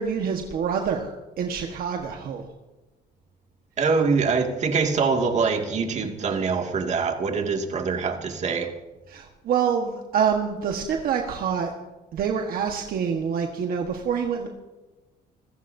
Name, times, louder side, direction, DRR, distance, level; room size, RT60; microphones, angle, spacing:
voice 1, 0.0-2.5 9.1-11.7 12.1-14.5, right 7 dB, 60° right, 3 dB, 1.4 m, -26 dB
voice 2, 3.8-8.7, right 5 dB, 45° right, 3 dB, 2.2 m, -24 dB
25.5 x 15.0 x 2.7 m, 1.1 s
cardioid pair, 110°, 17 cm